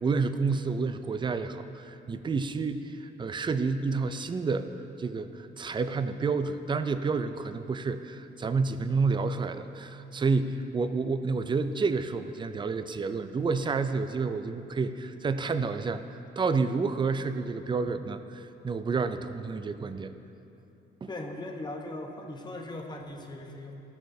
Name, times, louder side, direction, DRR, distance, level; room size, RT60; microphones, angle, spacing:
voice 1, 0.0-4.7 5.0-20.1 21.0-21.1, right 4 dB, 25° right, 10 dB, 0.4 m, -29 dB
voice 2, 21.1-23.7, left 1 dB, 20° left, 1 dB, 1.0 m, -39 dB
14.0 x 6.3 x 2.7 m, 2.8 s
cardioid pair, 90°, 20 cm